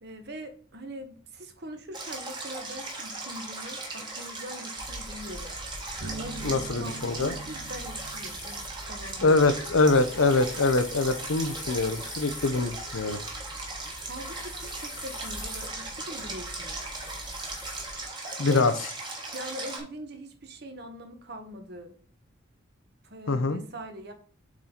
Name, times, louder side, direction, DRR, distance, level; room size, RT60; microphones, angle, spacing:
voice 1, 0.0-5.5 6.2-9.4 13.7-16.9 18.4-18.8 19.3-21.9 23.0-24.1, equal, 50° right, 7 dB, 1.1 m, -42 dB
Stream, 1.9-19.8, right 2 dB, 20° right, 1.4 m, -38 dB
sound 1, 4.8-18.1, left 1 dB, 10° left, 0.6 m, -44 dB
sound 2, 6.0-13.6, right 4 dB, 75° right, 1.1 m, -47 dB
voice 2, 6.4-7.3 9.2-13.2 18.4-18.7 23.3-23.6, left 3 dB, 85° left, 10 dB, 0.8 m, -24 dB
7.3 x 4.0 x 4.4 m, 0.44 s
head